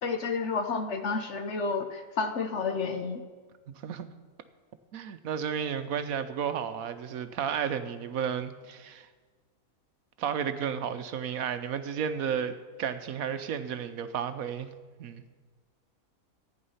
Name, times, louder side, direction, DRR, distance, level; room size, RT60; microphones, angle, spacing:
voice 1, 0.0-3.2, left 4 dB, 55° left, 7 dB, 1.0 m, -30 dB
voice 2, 4.9-9.1 10.2-14.7 15.0-15.2, right 8 dB, 70° right, 10 dB, 1.1 m, -32 dB
14.0 x 9.6 x 5.6 m, 1.4 s
omnidirectional pair, 1.6 m